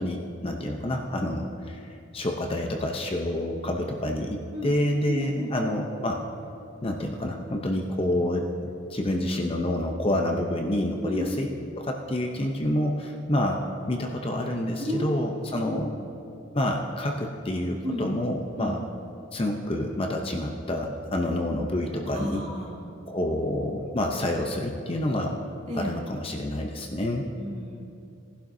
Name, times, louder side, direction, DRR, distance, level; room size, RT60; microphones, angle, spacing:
voice 1, 0.0-6.2 6.8-11.5 11.7-13.6 13.9-15.9 16.5-18.8 19.3-22.4 23.1-25.4 25.7-27.3, left 1 dB, 30° left, 2 dB, 0.7 m, -28 dB
voice 2, 5.1-5.5 10.9-11.3 14.8-15.7 17.8-18.1 18.5-18.8 22.1-22.8 25.7-25.9 27.4-27.8, equal, 35° right, -4 dB, 2.6 m, -32 dB
19.0 x 11.5 x 2.7 m, 2.6 s
head